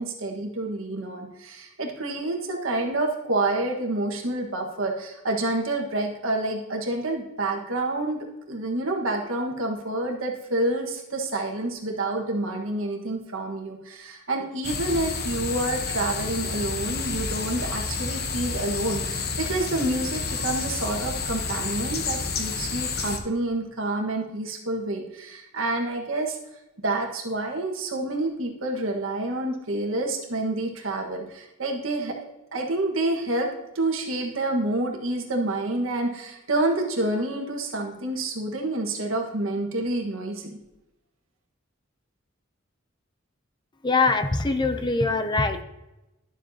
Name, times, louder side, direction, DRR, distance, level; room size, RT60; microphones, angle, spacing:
voice 1, 0.0-8.2 8.5-26.4 26.8-32.1 32.5-33.5 33.7-40.6, right 2 dB, 80° right, 1 dB, 1.6 m, -28 dB
sound 1, 14.6-23.2, left 4 dB, 50° left, 1.0 m, -30 dB
voice 2, 43.8-45.6, left 3 dB, 20° left, 9 dB, 0.5 m, -23 dB
11.5 x 7.3 x 2.8 m, 0.94 s
head